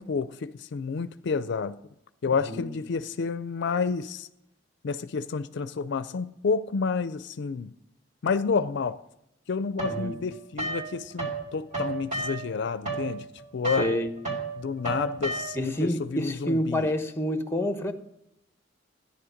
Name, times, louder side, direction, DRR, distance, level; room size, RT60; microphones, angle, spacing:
voice 1, 0.0-1.8 2.2-4.3 4.8-7.7 8.2-9.0 9.5-13.3 13.5-13.9 14.6-16.9, left 5 dB, 65° left, 0.4 m, -29 dB
voice 2, 9.8-10.2 13.8-14.1 15.5-17.9, equal, 15° left, 1.0 m, -28 dB
sound 1, 9.8-11.4 11.7-15.8, right 3 dB, 40° right, 3.1 m, -33 dB
14.0 x 10.0 x 5.1 m
head